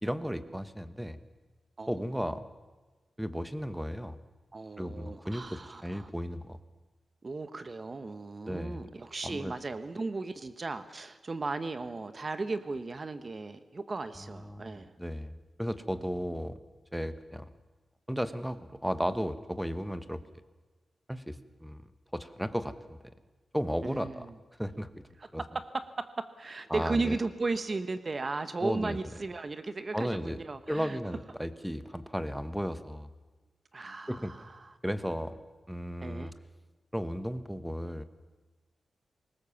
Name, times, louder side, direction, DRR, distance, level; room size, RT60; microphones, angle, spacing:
voice 1, 0.0-1.2 1.9-2.4 3.2-4.2 4.8-6.6 8.5-8.9 9.2-9.5 14.2-16.6 16.9-17.5 18.1-20.2 21.1-23.0 23.5-24.3 24.6-24.9 25.3-25.4 26.7-27.2 28.6-29.0 29.9-30.4 30.7-33.1 34.1-34.3 34.8-35.4 35.7-36.3 36.9-38.0, equal, 5° right, 12 dB, 1.0 m, -34 dB
voice 2, 4.5-6.1 7.2-14.9 23.8-24.3 25.2-31.0 33.7-34.7 36.0-36.3, right 3 dB, 35° right, 11 dB, 1.1 m, -36 dB
21.0 x 19.0 x 7.1 m, 1.3 s
wide cardioid pair, 110°, 0 cm